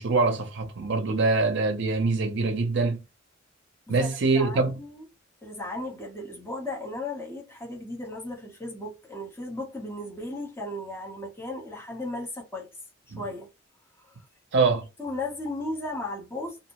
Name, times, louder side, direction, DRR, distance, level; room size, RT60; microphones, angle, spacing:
voice 1, 0.0-3.0 3.9-4.7 13.1-13.2 14.5-14.9, right 3 dB, 60° right, 0.6 m, -24 dB
voice 2, 4.0-5.0 5.4-12.7 13.1-13.5 14.0-14.2 15.0-16.6, left 2 dB, 10° left, 0.8 m, -35 dB
2.6 x 2.0 x 2.9 m
head